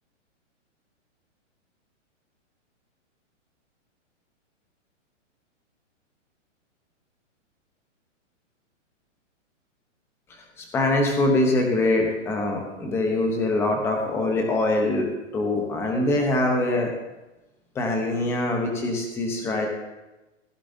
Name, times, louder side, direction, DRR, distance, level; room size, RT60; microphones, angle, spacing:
voice 1, 10.6-15.1 15.3-16.9 17.7-19.7, left 2 dB, 5° left, 2 dB, 0.8 m, -23 dB
15.0 x 10.0 x 2.7 m, 1.0 s
hypercardioid pair, 165°, 38 cm